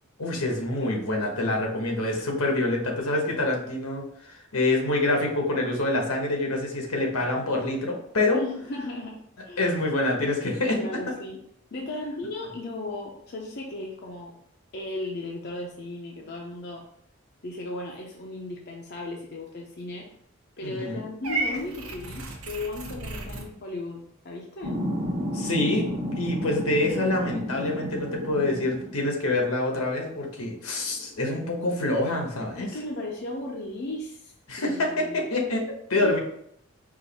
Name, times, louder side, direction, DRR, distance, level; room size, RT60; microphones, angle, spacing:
voice 1, 0.2-8.4 9.6-10.8 20.6-21.0 25.3-25.9 26.2-32.7 34.5-35.6 35.9-36.2, left 2 dB, 85° left, 1 dB, 1.1 m, -26 dB
voice 2, 8.3-9.7 10.8-11.4 11.7-14.3 14.7-16.8 17.4-20.1 20.6-24.8 32.6-35.2 36.0-36.2, left 2 dB, 50° left, -1 dB, 0.6 m, -36 dB
Purr / Meow, 21.2-23.5, right 2 dB, 80° right, 0.9 m, -33 dB
sound 1, 24.6-29.1 30.4-30.5 30.9-33.0, equal, 35° right, 1.0 m, -32 dB
4.8 x 2.5 x 4.1 m, 0.70 s
head